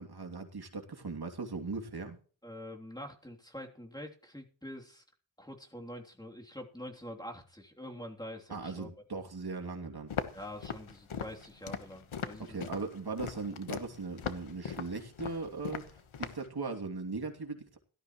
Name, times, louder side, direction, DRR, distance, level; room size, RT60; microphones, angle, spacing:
voice 1, 0.0-2.2 8.5-10.1 12.4-17.8, right 3 dB, 50° right, 4 dB, 2.9 m, -39 dB
voice 2, 2.4-5.0 5.4-8.9 10.3-12.6, equal, 10° left, 1 dB, 3.2 m, -45 dB
Walk footsteps, 10.1-16.5, left 7 dB, 85° left, 1.4 m, -40 dB
17.5 x 13.0 x 3.2 m, 0.39 s
wide cardioid pair, 80°, 47 cm